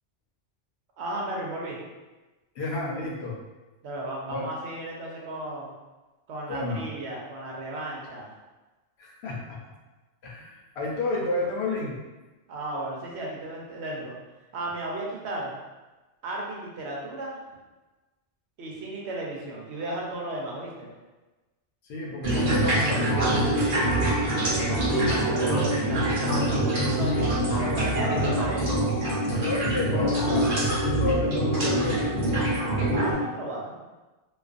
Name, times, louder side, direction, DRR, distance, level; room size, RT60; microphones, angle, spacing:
voice 1, 1.0-1.8 3.8-5.7 6.3-8.4 12.5-14.1 14.5-15.5 16.2-17.4 18.6-20.9 23.6-24.4 24.8-28.8 32.9-33.8, right 1 dB, 85° right, -3 dB, 0.9 m, -34 dB
voice 2, 2.6-3.4 4.3-4.5 6.5-6.8 9.0-9.6 10.2-12.0 21.9-23.2 29.4-32.1, left 2 dB, 75° left, -2 dB, 0.8 m, -31 dB
sound 1, 22.2-33.1, right 1 dB, 55° right, 0.9 m, -24 dB
2.4 x 2.3 x 2.4 m, 1.2 s
omnidirectional pair, 1.1 m